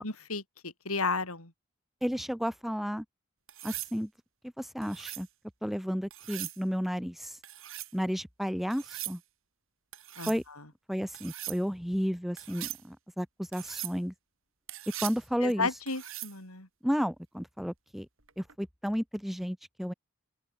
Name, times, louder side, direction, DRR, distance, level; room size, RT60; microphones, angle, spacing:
voice 1, 0.0-1.5 10.2-10.7 15.4-16.7, left 3 dB, 90° left, 7.5 m, -33 dB
voice 2, 2.0-3.0 3.6-4.1 4.6-5.3 5.6-7.4 7.9-9.2 10.3-10.4 10.9-13.3 13.5-14.1 15.0-15.7 16.8-18.1 18.4-19.9, equal, ahead, 2.7 m, -32 dB
sound 1, 3.5-3.9 4.8-5.3 6.1-6.6 7.4-7.9 8.7-9.2 9.9-10.4 11.1-11.6 12.4-12.8 13.5-14.0 14.7-15.2 15.9-16.4 18.3-18.5, right 15 dB, 70° right, 5.4 m, -40 dB
head